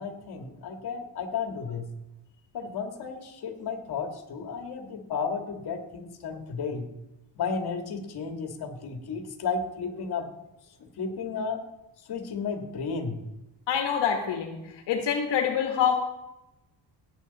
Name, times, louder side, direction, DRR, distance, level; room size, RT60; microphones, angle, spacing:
voice 1, 0.0-1.9 2.5-6.9 7.3-10.3 11.0-11.6 12.1-13.2, left 5 dB, 65° left, 5 dB, 1.8 m, -33 dB
voice 2, 13.7-14.6 14.9-15.9, left 8 dB, 85° left, 3 dB, 1.5 m, -25 dB
17.5 x 7.9 x 4.0 m, 0.94 s
cardioid pair, 120°, 42 cm